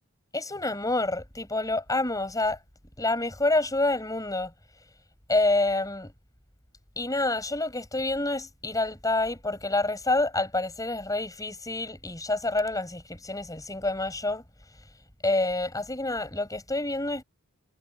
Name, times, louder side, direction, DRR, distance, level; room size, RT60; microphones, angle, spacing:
voice 1, 0.3-2.6 3.0-4.5 5.3-6.1 7.0-14.4 15.2-17.2, left 2 dB, 15° left, 7.2 m, -27 dB
head